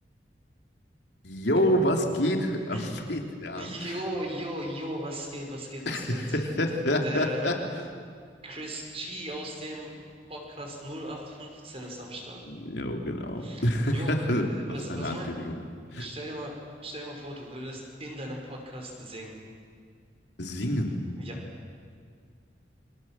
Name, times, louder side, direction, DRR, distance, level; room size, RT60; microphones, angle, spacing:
voice 1, 1.2-3.7 5.8-7.5 12.4-14.5 14.9-15.6 15.9-16.1 20.4-21.0, equal, 70° left, 3 dB, 3.3 m, -27 dB
voice 2, 3.6-6.5 7.0-7.6 8.4-9.9 10.3-12.4 13.4-13.6 13.9-15.3 16.0-16.5 16.8-19.4 21.2-21.4, right 1 dB, 35° right, 1 dB, 5.6 m, -37 dB
30.0 x 25.0 x 7.6 m, 2.1 s
head